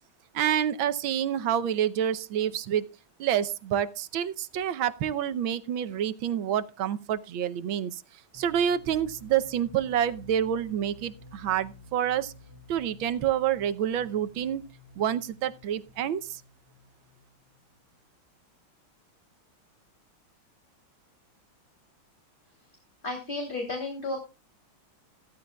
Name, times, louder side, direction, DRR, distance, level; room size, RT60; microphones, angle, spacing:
voice 1, 0.3-2.9 3.2-8.0 8.3-12.3 12.7-14.6 15.0-16.4, right 10 dB, 75° right, 1.5 m, -28 dB
sound 1, 8.3-18.0, left 2 dB, 70° left, 4.2 m, -52 dB
voice 2, 23.0-24.2, left 2 dB, 25° left, 3.3 m, -32 dB
15.5 x 13.5 x 2.3 m
omnidirectional pair, 2.3 m